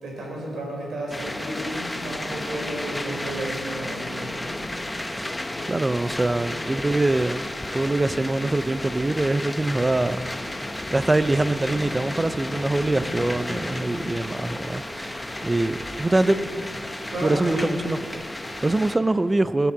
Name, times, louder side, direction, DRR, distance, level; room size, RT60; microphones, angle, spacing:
voice 1, 0.0-4.5 16.3-16.4 17.1-17.7, right 1 dB, 85° right, 4.4 m, -32 dB
sound 1, 1.1-19.0, left 1 dB, 10° left, 0.7 m, -33 dB
sound 2, 2.2-17.8, left 2 dB, 35° left, 2.2 m, -46 dB
voice 2, 5.2-10.3 10.9-16.4 17.2-19.7, right 2 dB, 20° right, 0.4 m, -24 dB
17.5 x 8.8 x 7.2 m
wide cardioid pair, 140°, 0 cm